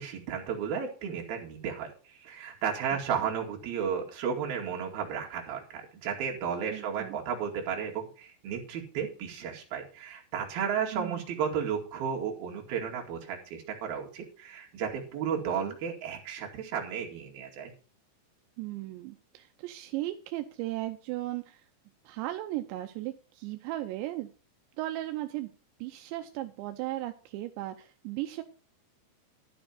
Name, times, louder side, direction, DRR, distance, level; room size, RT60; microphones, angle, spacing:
voice 1, 0.0-17.7, right 7 dB, 60° right, 0 dB, 3.9 m, -33 dB
voice 2, 2.9-3.3 6.7-7.2 10.9-11.2 15.7-15.8 18.6-21.7 22.1-24.3 24.8-25.5 25.8-28.4, right 16 dB, 85° right, 7 dB, 3.0 m, -36 dB
12.0 x 6.9 x 5.6 m, 0.37 s
omnidirectional pair, 5.1 m